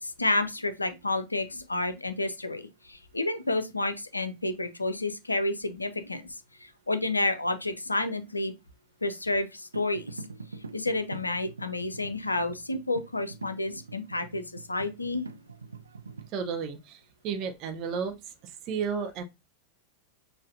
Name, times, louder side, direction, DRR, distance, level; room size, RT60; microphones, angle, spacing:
voice 1, 0.0-8.5 9.0-10.2 10.7-15.3, left 2 dB, 80° left, 0.5 m, -30 dB
sound 1, 9.7-16.3, right 4 dB, 75° right, 0.3 m, -44 dB
voice 2, 16.3-18.1 18.4-19.2, right 6 dB, 40° right, 0.7 m, -33 dB
6.3 x 2.6 x 2.6 m
figure-of-eight pair, 90°, 0 cm